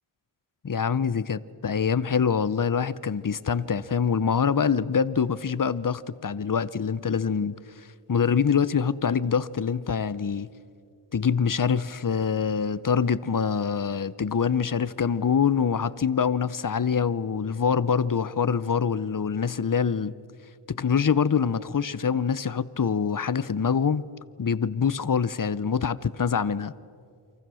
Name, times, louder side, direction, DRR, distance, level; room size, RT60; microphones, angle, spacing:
voice 1, 0.6-7.6 8.1-10.5 11.1-20.1 20.7-24.0 24.4-26.7, left 6 dB, 40° left, 0.7 m, -25 dB
29.5 x 24.5 x 6.3 m
wide cardioid pair, 60°, 49 cm